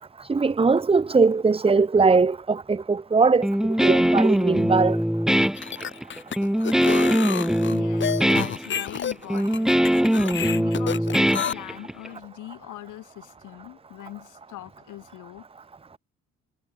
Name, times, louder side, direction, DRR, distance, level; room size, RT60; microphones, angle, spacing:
voice 1, 0.3-5.0, right 4 dB, 20° right, 0.9 m, -20 dB
Guitar, 3.4-12.1, equal, ahead, 1.8 m, -22 dB
sound 1, 5.4-11.5, left 7 dB, 40° left, 1.1 m, -30 dB
voice 2, 7.7-9.8 10.3-15.5, left 15 dB, 85° left, 3.6 m, -41 dB
cardioid pair, 90°, 30 cm